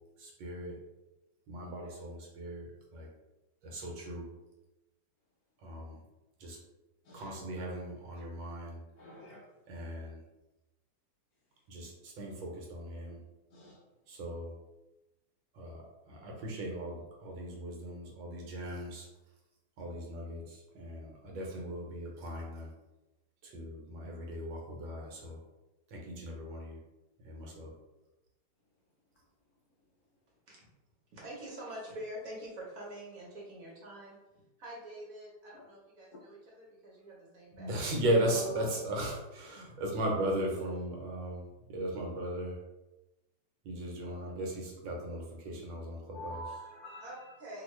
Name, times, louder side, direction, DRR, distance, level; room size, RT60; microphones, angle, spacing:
voice 1, 0.2-0.8 1.5-3.1 3.6-4.3 5.6-6.0 6.4-6.6 7.1-8.8 9.7-10.2 11.7-13.2 14.1-14.5 15.5-19.1 19.8-22.7 23.4-25.4 25.9-26.8 27.2-27.7 37.6-42.6 43.6-46.4, right 1 dB, 80° right, -1 dB, 1.5 m, -37 dB
voice 2, 9.0-9.4 13.5-13.8 38.3-38.5 46.1-47.3, equal, 70° left, -4 dB, 0.9 m, -46 dB
voice 3, 31.1-34.2 34.6-37.9 44.2-44.3 47.0-47.6, right 1 dB, 55° right, -4 dB, 1.2 m, -46 dB
2.8 x 2.8 x 3.1 m, 1.0 s
omnidirectional pair, 2.0 m